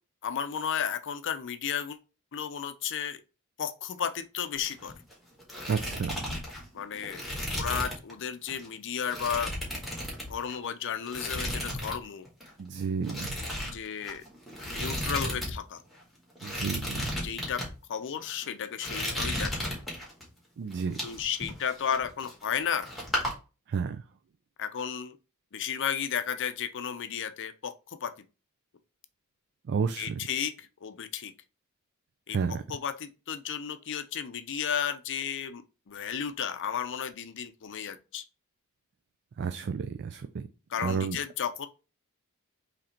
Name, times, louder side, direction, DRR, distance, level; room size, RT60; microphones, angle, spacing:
voice 1, 0.2-2.0 2.3-3.2 3.6-4.9 6.7-7.2 7.5-9.5 10.3-12.3 13.6-14.2 14.7-15.8 17.2-17.6 17.9-19.8 20.9-22.9 24.6-25.2 25.5-28.1 30.0-31.3 32.3-38.2 40.7-41.7, left 8 dB, 55° left, 0.5 m, -33 dB
sound 1, 4.6-5.1 5.4-8.1 8.5-8.7 9.1-10.7 11.1-12.0 12.3-12.5 13.0-15.5 15.8-15.9 16.4-17.7 18.3-18.5 18.8-20.2 20.7-22.6 22.8-23.3, left 1 dB, ahead, 1.9 m, -34 dB
voice 2, 5.7-6.1 12.6-13.4 16.4-17.0 20.6-21.0 23.7-24.0 29.7-30.1 32.3-32.6 39.4-40.4 40.8-41.2, right 5 dB, 50° right, 0.3 m, -31 dB
3.8 x 3.3 x 4.3 m
head